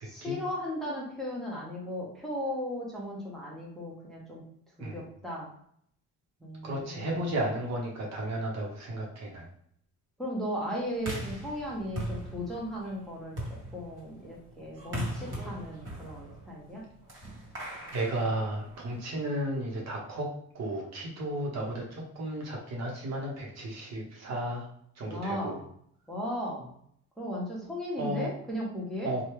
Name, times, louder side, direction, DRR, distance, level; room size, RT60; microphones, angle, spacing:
voice 1, 0.0-4.4 4.8-5.5 6.4-7.1 10.2-13.4 13.7-16.8 25.1-25.7 26.1-26.7 27.2-29.1, equal, ahead, -5 dB, 1.1 m, -36 dB
voice 2, 6.6-9.4 17.9-20.3 20.5-24.7 25.0-25.6 28.0-28.3 29.0-29.2, right 1 dB, 60° right, -2 dB, 1.0 m, -33 dB
sound 1, 11.0-19.1, right 1 dB, 40° right, 1.4 m, -40 dB
2.9 x 2.3 x 3.2 m, 0.67 s
cardioid pair, 90°, 30 cm